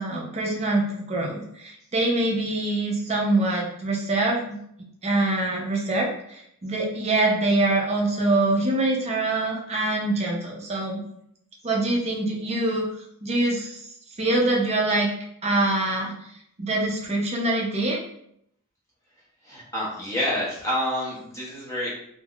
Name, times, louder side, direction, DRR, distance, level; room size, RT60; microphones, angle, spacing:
voice 1, 0.0-11.0 11.6-12.8 13.2-13.8 14.2-15.1 15.4-16.1 16.6-18.0, right 2 dB, 30° right, -1 dB, 0.6 m, -24 dB
voice 2, 19.4-21.9, left 1 dB, 15° left, -6 dB, 0.7 m, -28 dB
3.4 x 2.1 x 2.3 m, 0.72 s
head